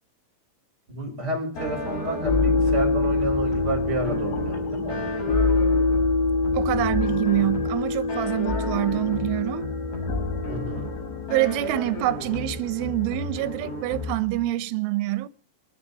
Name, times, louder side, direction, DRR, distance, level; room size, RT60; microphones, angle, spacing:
voice 1, 0.9-5.1 10.5-10.9, right 1 dB, 20° right, 5.3 m, -30 dB
sound 1, 1.6-14.1, left 3 dB, 85° left, 7.2 m, -26 dB
sound 2, 1.6-14.5, left 1 dB, 35° left, 8.1 m, -35 dB
voice 2, 6.5-9.7 11.3-15.3, right 16 dB, 90° right, 3.4 m, -26 dB
24.0 x 12.5 x 4.1 m
omnidirectional pair, 5.5 m